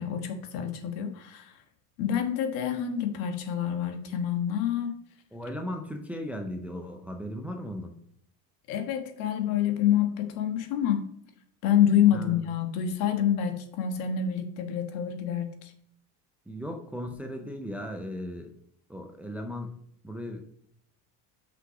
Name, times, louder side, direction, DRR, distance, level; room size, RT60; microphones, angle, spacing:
voice 1, 0.0-1.5 2.0-4.9 8.7-11.1 11.6-15.7, left 9 dB, 85° left, 6 dB, 1.4 m, -27 dB
voice 2, 5.3-7.9 12.1-12.4 16.5-18.5 18.9-19.8 20.0-20.4, equal, 5° right, 4 dB, 0.4 m, -37 dB
6.0 x 5.6 x 4.8 m, 0.68 s
cardioid pair, 160°, 43 cm